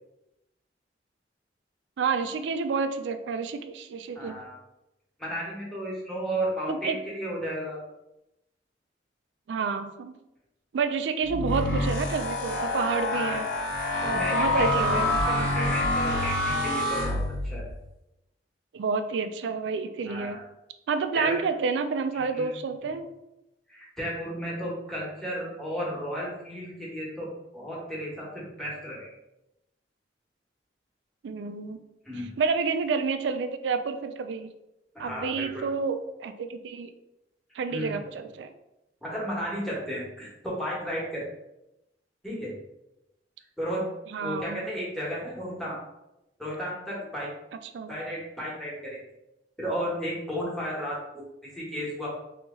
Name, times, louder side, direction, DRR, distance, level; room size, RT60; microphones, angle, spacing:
voice 1, 2.0-4.4 6.7-7.0 9.5-10.2 10.7-13.5 14.0-15.7 18.7-20.4 20.9-23.1 31.2-31.8 32.4-34.5 35.0-36.9 37.5-38.5 44.1-44.7 47.7-47.9, right 5 dB, 85° right, 9 dB, 0.3 m, -29 dB
voice 2, 4.1-4.6 5.2-7.8 13.1-13.4 14.0-17.6 20.1-20.4 21.1-21.4 22.3-22.5 23.7-29.1 32.1-32.3 34.9-35.6 37.7-38.1 39.0-41.2 42.2-42.5 43.6-43.8 44.2-45.8 46.4-47.3 47.9-49.0 49.6-52.1, equal, ahead, -6 dB, 1.1 m, -33 dB
sound 1, 11.2-17.7, left 2 dB, 75° left, 1.2 m, -27 dB
2.8 x 2.8 x 3.6 m, 0.90 s
head